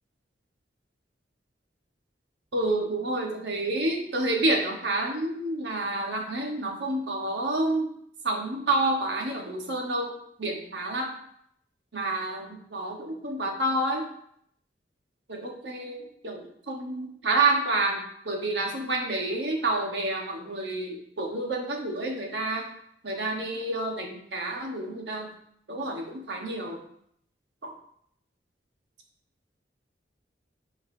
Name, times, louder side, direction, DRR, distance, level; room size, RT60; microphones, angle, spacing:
voice 1, 2.5-7.9 8.2-10.1 10.4-11.1 11.9-14.0 15.3-22.7 23.0-25.3 25.7-26.8, right 2 dB, 75° right, 1 dB, 1.3 m, -29 dB
8.0 x 4.7 x 2.7 m, 0.68 s
head